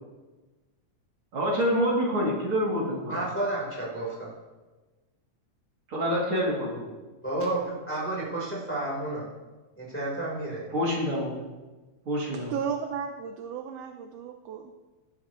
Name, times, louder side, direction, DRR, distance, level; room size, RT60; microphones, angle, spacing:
voice 1, 1.3-3.1 5.9-6.7 10.7-11.4 12.1-12.5, equal, 45° right, -4 dB, 3.4 m, -26 dB
voice 2, 3.1-4.3 7.2-9.3 9.8-10.7, right 2 dB, 5° left, -6 dB, 3.6 m, -31 dB
voice 3, 12.5-14.7, right 7 dB, 70° right, 6 dB, 1.5 m, -34 dB
17.0 x 11.5 x 3.1 m, 1.2 s
omnidirectional pair, 3.4 m